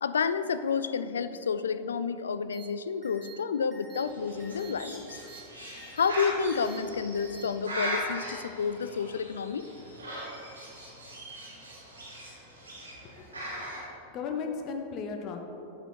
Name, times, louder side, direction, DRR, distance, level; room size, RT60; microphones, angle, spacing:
voice 1, 0.0-5.2 5.7-9.7, left 6 dB, 70° left, 13 dB, 0.3 m, -30 dB
sound 1, 2.5-2.7 3.0-3.3 3.7-4.0 4.4-4.7 5.1-5.4 5.8-6.1 6.5-6.8 7.1-7.5 7.8-8.0, right 4 dB, 20° right, 1.4 m, -50 dB
Bird, 4.0-13.8, equal, 75° right, 1.4 m, -39 dB
voice 2, 13.0-13.7 14.0-15.4, left 5 dB, 35° left, 4 dB, 0.7 m, -36 dB
7.9 x 5.7 x 4.4 m, 2.8 s
figure-of-eight pair, 90°, 0 cm